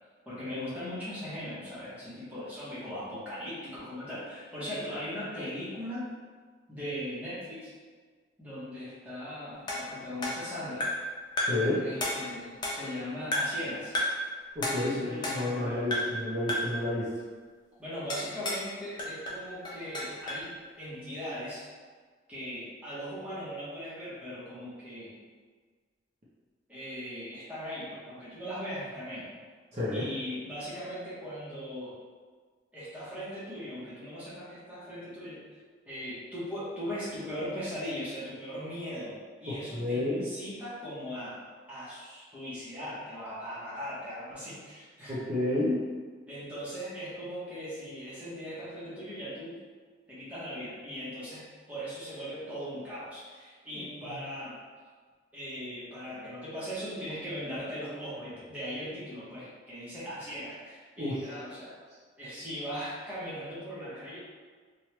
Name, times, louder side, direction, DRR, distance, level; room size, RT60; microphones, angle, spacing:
voice 1, 0.3-6.1 6.7-7.7 8.4-10.9 11.8-14.0 14.7-15.9 17.8-21.7 22.3-25.2 26.7-29.3 29.9-32.0 32.7-35.4 35.9-41.4 41.7-45.2 46.3-49.6 50.1-54.6 55.3-61.8 62.2-64.2, equal, 10° right, -11 dB, 0.9 m, -39 dB
sound 1, 9.7-11.1 11.4-11.7 12.0-13.0 13.3-13.7 13.9-14.3 14.6-15.6 15.9-16.2 16.5-16.8 18.1-18.7 19.0-20.5, left 1 dB, 25° left, 0.4 m, -32 dB
voice 2, 11.5-11.8 14.5-17.1 29.7-30.0 39.5-40.3 45.1-45.8 53.7-53.8 54.1-54.2 61.0-61.2, left 1 dB, 35° right, -9 dB, 0.6 m, -30 dB
3.0 x 2.3 x 3.0 m, 1.5 s
head